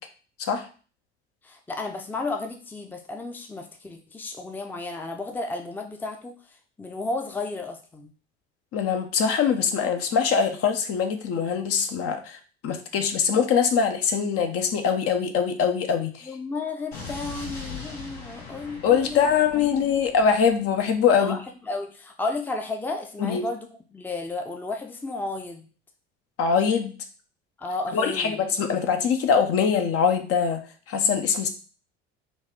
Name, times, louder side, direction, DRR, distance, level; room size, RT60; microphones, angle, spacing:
voice 1, 1.4-8.1 16.2-19.3 19.5-20.0 21.2-25.7 27.6-28.4, left 3 dB, 5° left, 3 dB, 0.5 m, -33 dB
voice 2, 8.7-12.4 12.6-16.3 18.8-21.4 23.2-23.4 26.4-26.9 27.9-30.6 30.9-31.5, left 6 dB, 45° left, 6 dB, 0.7 m, -23 dB
Explosion, 16.9-21.0, left 4 dB, 75° left, 1.6 m, -40 dB
4.1 x 2.3 x 3.5 m, 0.38 s
figure-of-eight pair, 60°, 32 cm